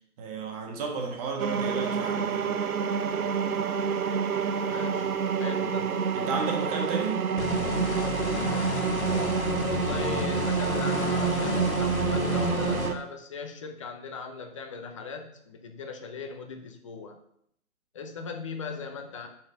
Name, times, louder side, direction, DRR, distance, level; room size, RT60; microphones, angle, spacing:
voice 1, 0.2-2.6 6.1-7.3, right 4 dB, 25° right, 1.3 m, -33 dB
sound 1, 1.4-12.9, right 7 dB, 80° right, 0.8 m, -28 dB
voice 2, 4.7-5.1 5.4-6.0 9.6-17.2 17.9-19.3, left 4 dB, 20° left, 0.6 m, -38 dB
sound 2, 7.4-12.9, left 5 dB, 50° left, 1.1 m, -31 dB
5.6 x 4.8 x 6.2 m
hypercardioid pair, 140°, 43 cm